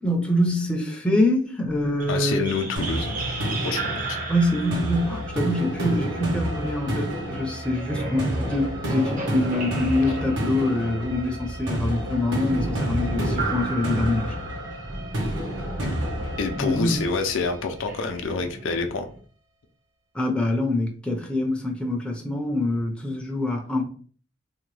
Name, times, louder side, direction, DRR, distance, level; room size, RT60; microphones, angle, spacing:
voice 1, 0.0-2.5 4.3-14.4 16.6-17.0 20.1-23.8, left 1 dB, 5° left, 0.4 m, -25 dB
sound 1, 1.6-6.7 7.7-19.2, right 2 dB, 45° right, 0.6 m, -35 dB
voice 2, 2.1-3.2 3.6-4.2 15.8-15.9 16.4-19.1, left 4 dB, 75° left, 0.5 m, -27 dB
sound 2, 2.8-17.7, equal, 70° right, 1.1 m, -30 dB
2.7 x 2.2 x 3.1 m
head